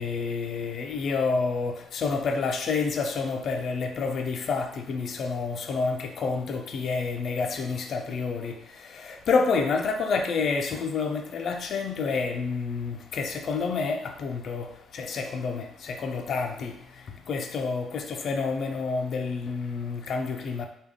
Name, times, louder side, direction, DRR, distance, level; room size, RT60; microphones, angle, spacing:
voice 1, 0.0-20.7, left 4 dB, 60° left, 4 dB, 0.4 m, -29 dB
3.4 x 2.2 x 3.5 m, 0.71 s
cardioid pair, 90°, 0 cm